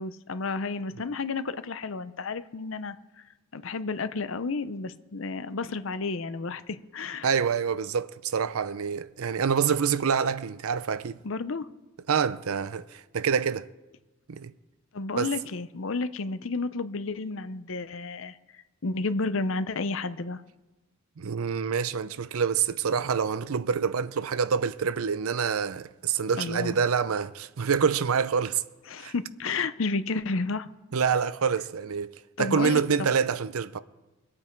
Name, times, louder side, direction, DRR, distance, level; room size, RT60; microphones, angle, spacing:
voice 1, 0.0-2.9 3.5-7.3 11.2-11.7 14.9-18.3 18.8-20.4 26.4-26.7 28.9-30.7 32.4-32.8, left 3 dB, 65° left, 0.6 m, -31 dB
voice 2, 7.2-11.2 12.1-13.7 14.3-14.5 15.2-15.3 21.2-28.6 29.0-29.1 30.9-32.1 32.4-33.8, right 6 dB, 85° right, 0.6 m, -26 dB
23.0 x 8.8 x 4.5 m
head